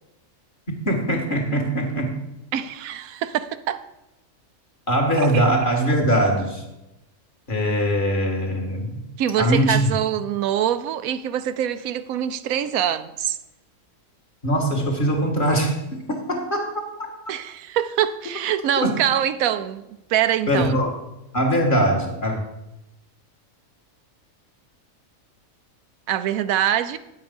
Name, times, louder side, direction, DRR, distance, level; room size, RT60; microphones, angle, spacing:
voice 1, 0.9-2.2 4.9-6.6 7.5-9.0 9.4-9.9 14.4-17.1 18.8-18.9 20.5-20.9 21.3-22.4, equal, 35° left, 2.0 m, -22 dB
voice 2, 2.5-3.8 5.2-5.5 9.2-13.4 17.3-19.8 20.1-20.7 26.1-27.0, right 10 dB, 90° right, 1.1 m, -24 dB
10.0 x 7.9 x 5.3 m
omnidirectional pair, 1.4 m